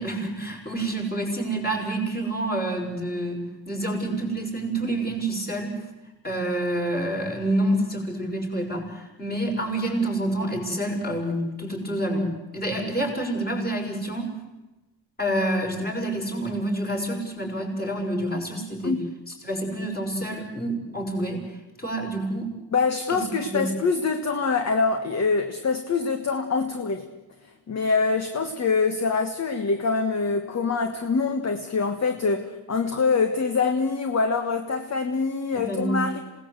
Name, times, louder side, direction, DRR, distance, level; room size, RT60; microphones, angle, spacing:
voice 1, 0.0-3.4 3.7-5.8 6.2-14.3 15.2-18.9 19.4-21.4 21.8-22.5 23.1-23.7 35.5-36.0, right 1 dB, 20° left, -1 dB, 6.2 m, -28 dB
voice 2, 22.7-27.1 27.7-36.2, left 4 dB, 35° left, 7 dB, 1.5 m, -24 dB
27.5 x 18.5 x 8.2 m, 1.1 s
wide cardioid pair, 145°, 45 cm